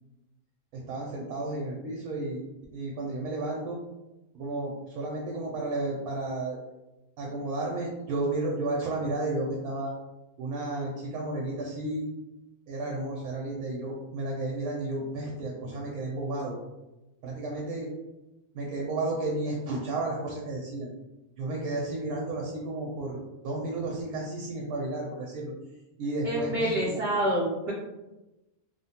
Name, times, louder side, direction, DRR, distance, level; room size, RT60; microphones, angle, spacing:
voice 1, 0.9-2.4 2.7-3.8 4.3-6.6 7.2-9.9 10.4-12.0 12.7-16.6 17.2-17.9 18.5-20.9 21.4-25.5 26.0-26.7, right 2 dB, 75° right, -2 dB, 1.1 m, -32 dB
voice 2, 26.2-27.7, right 1 dB, 60° right, -5 dB, 0.6 m, -27 dB
3.0 x 2.1 x 2.8 m, 1.0 s
omnidirectional pair, 1.6 m